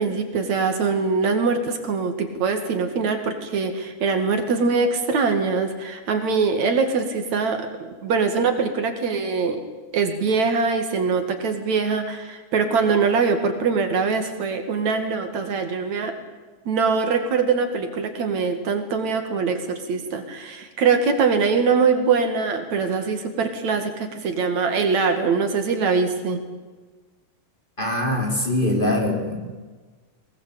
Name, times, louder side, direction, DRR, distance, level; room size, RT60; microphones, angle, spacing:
voice 1, 0.0-7.7 8.0-9.6 9.9-16.1 16.7-26.4, right 5 dB, 65° right, 6 dB, 3.4 m, -23 dB
voice 2, 27.8-29.4, left 1 dB, 15° left, 1 dB, 3.6 m, -22 dB
22.0 x 21.0 x 8.5 m, 1.3 s
omnidirectional pair, 3.5 m